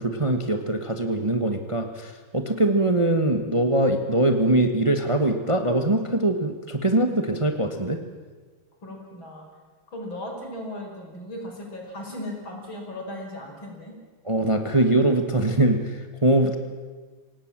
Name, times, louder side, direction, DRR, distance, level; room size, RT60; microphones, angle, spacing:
voice 1, 0.0-8.0 14.2-16.6, right 1 dB, 20° right, 6 dB, 1.2 m, -22 dB
voice 2, 8.8-9.4 9.9-13.9, left 1 dB, 75° left, 0 dB, 6.1 m, -37 dB
27.5 x 18.0 x 7.5 m, 1.4 s
omnidirectional pair, 2.2 m